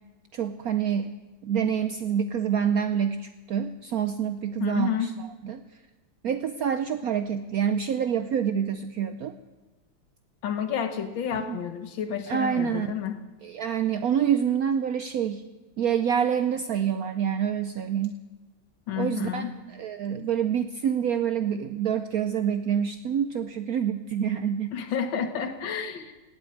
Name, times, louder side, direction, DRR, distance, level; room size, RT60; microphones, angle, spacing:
voice 1, 0.3-1.2 1.4-5.1 5.4-5.6 6.2-9.3 11.4-11.6 12.3-12.9 13.4-15.4 15.8-18.2 19.0-24.7, right 8 dB, 70° right, 9 dB, 0.8 m, -27 dB
voice 2, 4.6-5.1 10.4-13.2 18.9-19.6 24.7-26.1, left 8 dB, 75° left, 8 dB, 1.9 m, -30 dB
17.5 x 8.4 x 8.5 m, 1.2 s
omnidirectional pair, 2.1 m